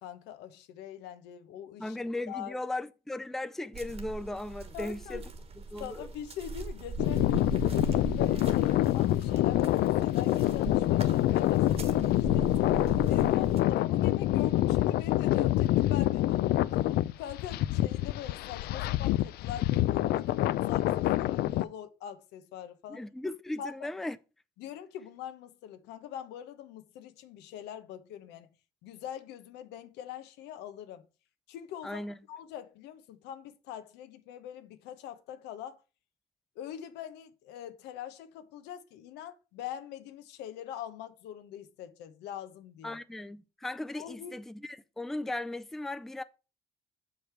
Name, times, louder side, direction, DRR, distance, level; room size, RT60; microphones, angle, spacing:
voice 1, 0.0-2.0 2.3-2.6 4.7-5.3 5.8-7.5 7.9-12.5 13.1-16.6 17.2-23.0 23.6-23.9 24.6-28.5 28.8-31.1 31.5-35.8 36.6-43.0 43.9-44.4, left 10 dB, 90° left, 0.9 m, -43 dB
voice 2, 1.8-5.2 5.7-6.1 13.2-13.5 22.9-24.2 31.8-32.2 42.8-46.2, left 2 dB, ahead, 0.4 m, -37 dB
sound 1, 3.7-13.6, right 4 dB, 35° right, 1.3 m, -40 dB
sound 2, 7.0-21.6, left 15 dB, 70° left, 0.4 m, -26 dB
6.7 x 5.2 x 4.5 m
cardioid pair, 110°, 17 cm